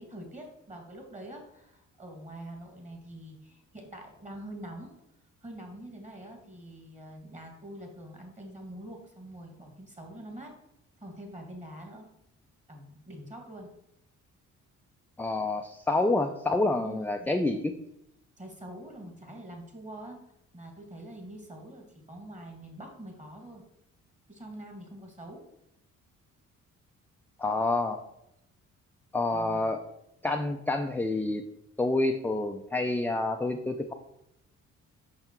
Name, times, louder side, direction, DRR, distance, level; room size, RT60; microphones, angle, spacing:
voice 1, 0.0-5.0 5.4-10.5 11.0-12.1 12.7-13.7 16.8-17.3 18.4-20.2 20.5-23.6 24.3-25.5 29.3-29.7, right 1 dB, 25° right, 2 dB, 2.2 m, -45 dB
voice 2, 15.2-17.7 27.4-28.0 29.1-29.8 30.2-31.4 31.8-33.9, left 2 dB, 5° left, 4 dB, 0.5 m, -28 dB
5.8 x 5.6 x 4.5 m, 0.80 s
cardioid pair, 90°, 30 cm